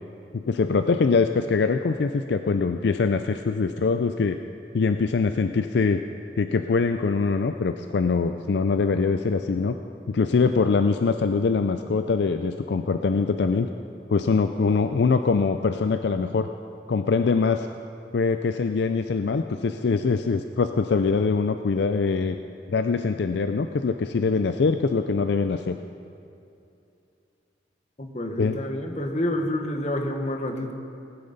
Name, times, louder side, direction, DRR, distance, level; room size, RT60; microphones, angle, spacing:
voice 1, 0.3-4.4 4.7-6.0 6.4-9.8 10.1-13.7 14.1-16.5 16.9-17.7 18.1-22.4 22.7-25.8 28.4-28.6, left 4 dB, 70° left, 8 dB, 0.4 m, -23 dB
voice 2, 28.0-30.7, left 1 dB, 40° left, 4 dB, 1.2 m, -28 dB
19.0 x 10.0 x 4.1 m, 2.6 s
head